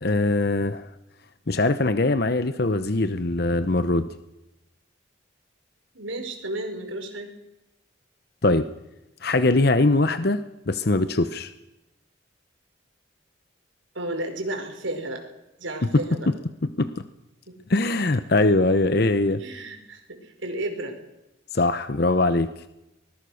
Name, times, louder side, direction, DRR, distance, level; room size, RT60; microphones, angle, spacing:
voice 1, 0.0-0.9 1.5-4.1 8.4-8.7 9.2-11.5 15.9-16.3 16.8-17.0 17.7-19.4 21.5-22.5, left 2 dB, 55° left, 11 dB, 0.9 m, -22 dB
voice 2, 5.9-7.3 14.0-15.2 15.6-16.3 17.5-17.6 19.4-21.0, right 1 dB, 85° right, 4 dB, 5.2 m, -33 dB
24.5 x 20.5 x 6.5 m, 0.93 s
head